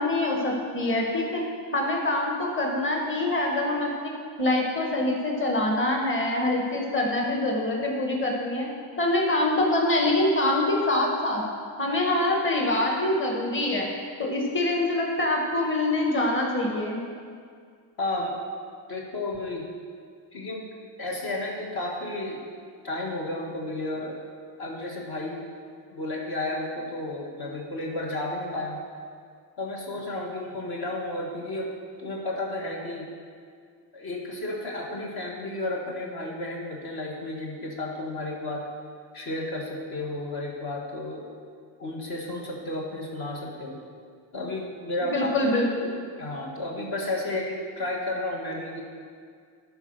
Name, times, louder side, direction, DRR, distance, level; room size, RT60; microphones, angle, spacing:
voice 1, 0.0-1.4 1.7-4.1 4.4-8.7 9.0-11.4 11.8-13.9 14.2-17.0 45.1-45.9, left 1 dB, 25° left, 0 dB, 1.6 m, -25 dB
voice 2, 18.0-18.4 18.9-19.7 20.3-20.7 21.0-22.4 22.8-24.2 24.6-25.5 25.9-28.8 29.6-33.1 33.9-38.7 39.1-41.3 41.8-43.8 44.3-45.5 46.2-48.8, left 2 dB, 55° left, -1 dB, 1.5 m, -32 dB
12.0 x 4.8 x 6.4 m, 2.1 s
cardioid pair, 115°, 46 cm